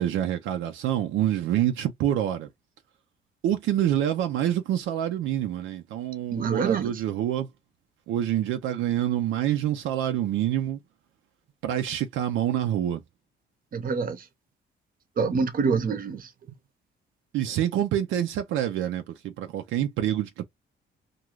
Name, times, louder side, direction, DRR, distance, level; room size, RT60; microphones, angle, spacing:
voice 1, 0.0-2.5 3.4-7.5 8.1-10.8 11.6-13.0 17.3-20.4, right 11 dB, 80° right, 0.5 m, -26 dB
voice 2, 6.3-7.0 13.7-14.2 15.2-16.3, right 5 dB, 45° right, 0.7 m, -26 dB
2.4 x 2.2 x 3.0 m
cardioid pair, 90°, 20 cm